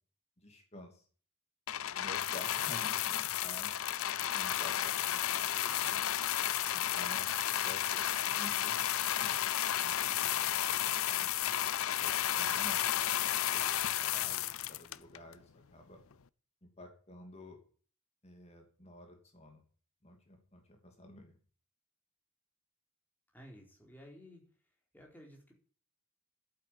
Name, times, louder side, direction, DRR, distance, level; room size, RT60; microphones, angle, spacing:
voice 1, 0.4-1.1 1.9-3.7 4.2-6.0 6.7-7.3 7.6-9.4 9.7-11.3 12.0-16.0 16.6-17.6 18.2-19.6 20.0-21.4, left 1 dB, 30° left, 3 dB, 2.8 m, -51 dB
sound 1, 1.7-15.3 16.1-16.2, left 11 dB, 70° left, 0.6 m, -32 dB
voice 2, 23.3-24.5 24.9-25.5, equal, 10° left, 0 dB, 4.2 m, -54 dB
11.5 x 9.0 x 8.8 m, 0.42 s
head